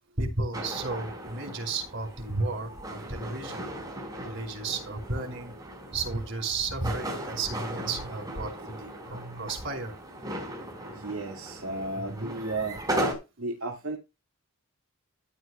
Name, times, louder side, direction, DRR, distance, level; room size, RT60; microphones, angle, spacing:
voice 1, 0.2-3.6 4.2-5.5 5.9-9.9 12.1-12.3, right 3 dB, 60° right, 5.2 m, -33 dB
sound 1, 0.5-13.1, right 1 dB, 20° right, 4.5 m, -37 dB
voice 2, 10.9-12.8 13.4-14.0, right 2 dB, 80° right, 2.0 m, -34 dB
14.0 x 9.9 x 2.3 m
head